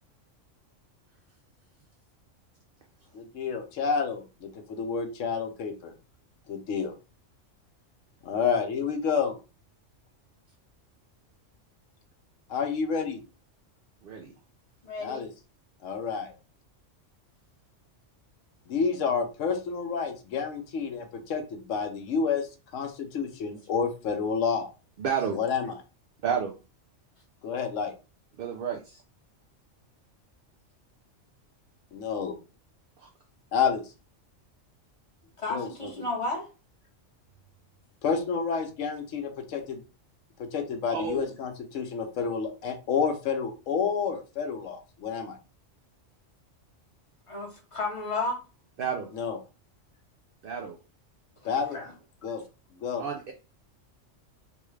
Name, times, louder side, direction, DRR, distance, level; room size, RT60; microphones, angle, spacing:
voice 1, 3.1-5.9 6.5-6.9 8.2-9.4 12.5-13.2 15.0-15.3 15.8-16.3 18.7-22.5 22.7-24.7 25.3-25.7 27.4-27.9 31.9-32.4 33.5-33.8 35.5-35.9 38.0-39.8 40.4-45.4 49.1-49.4 51.4-51.8 52.2-52.4 52.7-53.0, left 6 dB, 75° left, 5 dB, 1.1 m, -29 dB
voice 2, 14.0-14.3 25.0-25.4 26.2-26.5 28.4-29.0 33.0-33.1 40.9-41.3 48.8-49.1 50.4-50.8 53.0-53.3, right 7 dB, 60° right, 2 dB, 0.6 m, -31 dB
voice 3, 14.8-15.3 35.4-36.5 47.3-48.4 51.4-51.9, left 2 dB, 25° left, -2 dB, 1.1 m, -33 dB
3.4 x 2.3 x 3.1 m, 0.31 s
omnidirectional pair, 1.3 m